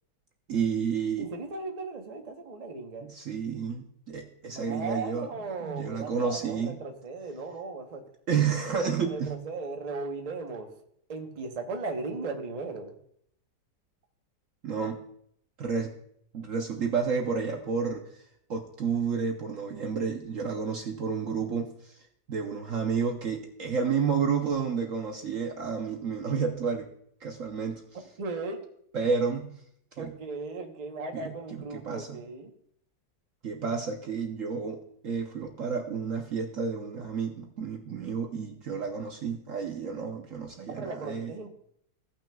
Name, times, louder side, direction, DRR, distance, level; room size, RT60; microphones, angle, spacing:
voice 1, 0.5-1.3 3.0-5.3 5.6-6.8 8.3-9.4 14.6-15.0 15.6-15.9 16.3-18.2 18.5-22.0 22.3-26.9 27.2-27.8 28.9-29.5 30.0-30.1 31.1-32.2 33.4-41.3, right 6 dB, 60° right, 2 dB, 0.9 m, -30 dB
voice 2, 1.2-3.1 4.4-8.0 9.1-10.7 11.1-13.0 28.2-28.6 30.0-32.5 40.7-41.5, right 3 dB, 35° right, 3 dB, 0.6 m, -37 dB
16.5 x 6.1 x 2.3 m, 0.70 s
omnidirectional pair, 2.0 m